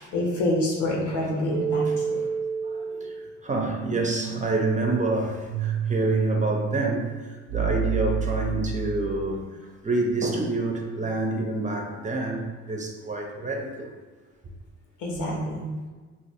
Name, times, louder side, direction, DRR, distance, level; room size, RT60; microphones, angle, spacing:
voice 1, 0.0-1.9 15.0-15.7, left 1 dB, 85° left, -2 dB, 1.0 m, -26 dB
sound 1, 1.5-9.4, right 7 dB, 75° right, 0.5 m, -30 dB
voice 2, 1.8-2.3 2.6-13.9, right 2 dB, 25° right, 1 dB, 0.5 m, -28 dB
2.6 x 2.3 x 4.1 m, 1.3 s
cardioid pair, 90°, 30 cm